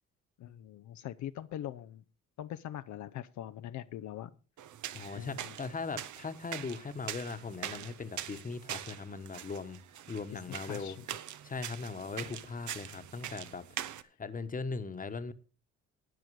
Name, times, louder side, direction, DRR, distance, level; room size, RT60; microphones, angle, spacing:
voice 1, 0.4-2.0 2.4-4.3 5.1-5.5 10.3-11.1, left 11 dB, 70° left, 0.6 m, -42 dB
sound 1, 4.6-14.0, right 11 dB, 75° right, 0.9 m, -43 dB
voice 2, 4.9-9.8 10.1-11.0 11.4-13.6 14.2-15.3, left 4 dB, 25° left, 1.2 m, -39 dB
13.0 x 9.0 x 4.8 m
cardioid pair, 90°, 30 cm